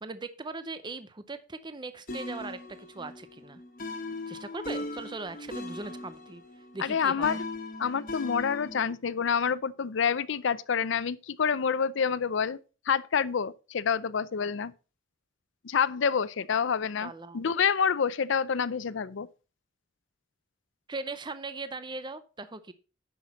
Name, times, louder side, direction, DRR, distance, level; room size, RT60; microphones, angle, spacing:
voice 1, 0.0-3.6 4.3-7.4 17.0-17.4 20.9-22.7, right 3 dB, 25° right, 0.6 m, -39 dB
sound 1, 2.1-8.9, left 2 dB, 45° left, 1.6 m, -39 dB
voice 2, 6.8-7.4 7.8-12.6 12.9-14.7 15.6-19.3, left 6 dB, 65° left, 0.5 m, -28 dB
10.0 x 6.2 x 4.1 m
head